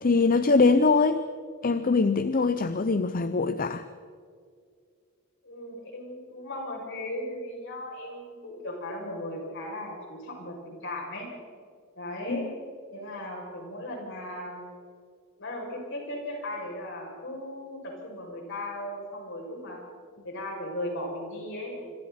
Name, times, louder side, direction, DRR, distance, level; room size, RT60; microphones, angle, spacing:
voice 1, 0.0-1.2 1.6-3.8 12.3-12.5, left 4 dB, 40° left, 11 dB, 0.7 m, -22 dB
voice 2, 5.4-11.3 12.0-12.5 12.9-14.8 15.4-19.8 20.2-21.9, left 1 dB, 60° left, -1 dB, 7.2 m, -37 dB
26.0 x 26.0 x 4.4 m, 2.2 s
head